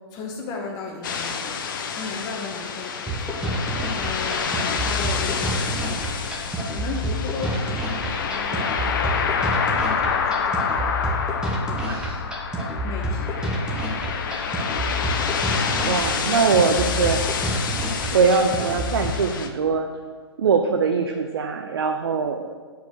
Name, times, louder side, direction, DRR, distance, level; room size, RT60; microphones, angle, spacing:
voice 1, 0.1-1.6 1.9-3.5 3.9-6.4 6.7-10.8 11.7-11.8 12.8-13.5, left 3 dB, 25° left, 0 dB, 1.4 m, -36 dB
sound 1, 1.0-19.5, left 6 dB, 45° left, 0.9 m, -28 dB
sound 2, 3.1-19.1, equal, 5° right, 1.1 m, -28 dB
voice 2, 11.8-12.2 15.9-17.3 18.1-19.9 20.4-22.6, right 5 dB, 60° right, 5 dB, 0.6 m, -22 dB
8.1 x 4.8 x 6.3 m, 1.5 s
figure-of-eight pair, 120°, 14 cm